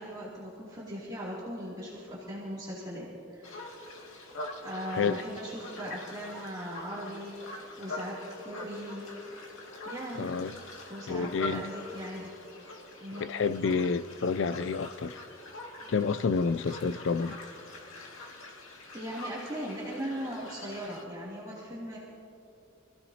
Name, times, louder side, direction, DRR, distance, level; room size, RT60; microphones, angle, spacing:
voice 1, 0.0-3.7 4.6-9.1 9.8-10.4 10.9-12.4 13.0-13.3 18.9-22.0, equal, 20° right, 2.8 m, -39 dB
sound 1, 3.4-21.0, left 2 dB, 90° left, 2.2 m, -44 dB
voice 2, 4.9-5.2 10.2-10.6 11.1-11.7 13.2-15.2 15.9-17.4, left 5 dB, 65° left, 0.4 m, -29 dB
27.0 x 16.0 x 2.9 m
head